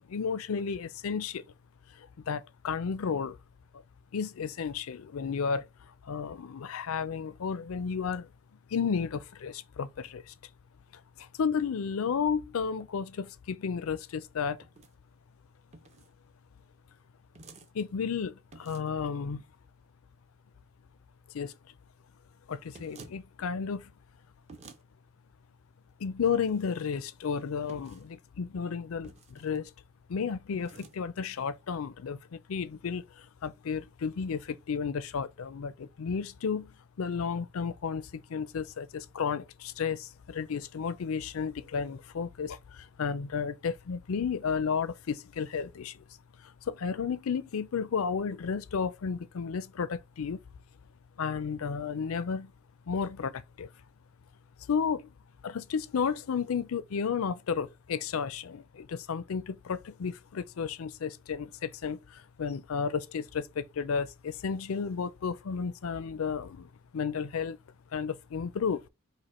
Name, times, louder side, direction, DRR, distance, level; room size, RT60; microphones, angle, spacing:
voice 1, 0.1-1.4 2.0-3.4 4.1-5.7 6.0-8.3 8.7-10.3 11.2-14.6 17.7-19.4 21.3-21.5 22.5-23.9 26.0-29.7 30.1-46.0 46.4-50.4 51.2-52.5 52.9-53.7 54.7-55.1 55.4-67.6 67.9-68.8, left 6 dB, 70° left, 0.4 m, -33 dB
sound 1, 14.6-14.9 15.7-16.1 17.4-17.7 18.5-19.0 22.7-23.2 24.5-24.8 26.2-26.7 27.7-28.1 29.0-29.6 30.5-31.0, right 3 dB, 30° right, 0.6 m, -51 dB
5.0 x 2.1 x 4.2 m
head